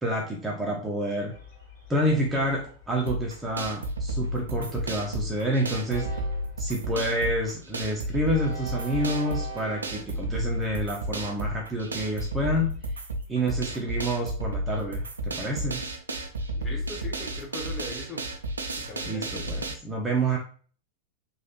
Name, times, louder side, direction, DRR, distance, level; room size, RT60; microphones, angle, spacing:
voice 1, 0.0-1.3 1.9-6.2 6.6-12.7 13.3-15.8 19.1-20.4, right 1 dB, 15° right, -1 dB, 0.6 m, -28 dB
Train, 1.3-14.3, right 3 dB, 60° left, 1.4 m, -46 dB
sound 1, 3.1-19.7, right 1 dB, 75° right, 0.4 m, -32 dB
voice 2, 16.5-18.2 18.8-19.6, left 2 dB, 25° left, -2 dB, 1.2 m, -40 dB
3.0 x 2.3 x 3.0 m, 0.43 s
figure-of-eight pair, 90°, 0 cm